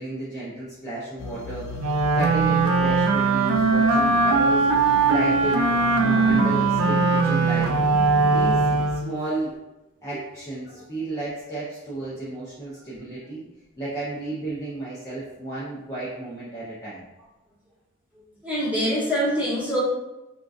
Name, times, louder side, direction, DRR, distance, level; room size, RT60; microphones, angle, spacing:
voice 1, 0.0-7.7 8.2-8.6 8.9-9.6 10.0-13.4 13.8-17.1, right 2 dB, 15° left, -10 dB, 0.6 m, -32 dB
sound 1, 1.2-8.9, left 4 dB, 65° left, 0.3 m, -33 dB
Wind instrument woodwind instrument, 1.8-9.2, right 4 dB, 75° right, 0.4 m, -20 dB
voice 2, 18.4-19.8, equal, 5° right, -9 dB, 1.2 m, -24 dB
3.7 x 2.4 x 2.4 m, 1.0 s
head